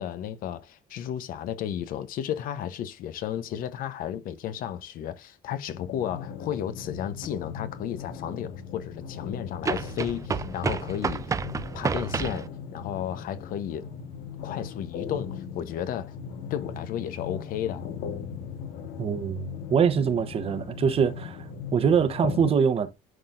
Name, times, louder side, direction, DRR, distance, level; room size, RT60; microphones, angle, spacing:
voice 1, 0.0-11.4 11.7-13.9 14.4-16.1 16.5-17.9, left 10 dB, 65° left, 0.8 m, -33 dB
sound 1, 5.7-22.5, left 7 dB, 85° left, 1.4 m, -38 dB
sound 2, 7.2-7.3 9.6-12.5, right 5 dB, 20° right, 0.4 m, -30 dB
voice 2, 19.0-19.4 19.7-21.4 21.7-22.9, right 6 dB, 40° right, 0.9 m, -23 dB
11.0 x 4.0 x 2.5 m
cardioid pair, 135°, 16 cm